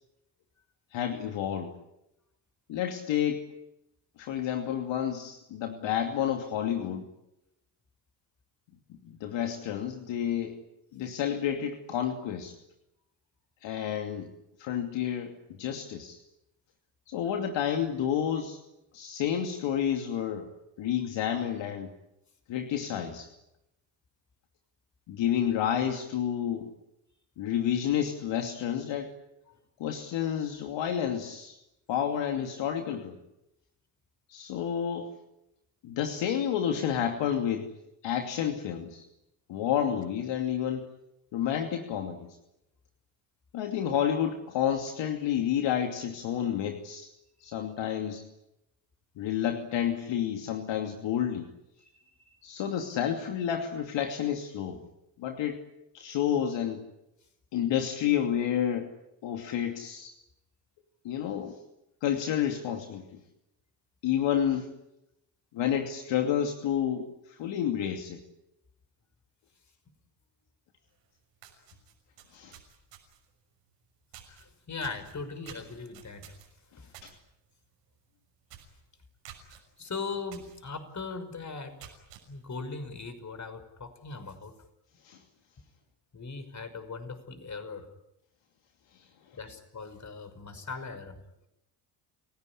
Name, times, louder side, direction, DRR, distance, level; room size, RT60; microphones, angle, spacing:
voice 1, 0.9-1.7 2.7-3.4 4.2-7.1 9.0-10.6 10.9-12.6 13.6-14.3 14.6-16.2 17.1-18.6 18.9-20.5 20.8-21.9 22.5-23.3 25.1-26.7 27.4-29.1 29.8-31.6 31.9-33.2 34.3-35.1 35.8-37.7 38.0-39.0 39.5-40.9 41.3-42.3 43.5-47.1 47.4-48.3 49.2-51.5 52.4-54.9 55.2-55.6 55.9-56.9 57.5-58.9 59.2-60.1 61.0-61.6 62.0-63.2 64.0-64.7 65.5-68.2 72.3-72.6 77.0-77.1 85.0-85.2, left 9 dB, 60° left, 4 dB, 2.7 m, -30 dB
voice 2, 51.8-52.4 74.3-76.3 76.8-76.9 79.5-81.9 82.3-84.5 86.1-87.9 89.3-91.2, left 4 dB, 35° left, 10 dB, 5.8 m, -40 dB
sound 1, 71.0-71.1 71.4-73.3 74.1-74.4 74.8-77.1 77.5-77.7 78.0-78.1 78.5-78.8 79.2-79.6 80.3-80.6 81.0-81.1 81.6-82.2, right 11 dB, 80° right, 6.4 m, -50 dB
30.0 x 17.5 x 10.0 m, 0.88 s
hypercardioid pair, 55°, 50 cm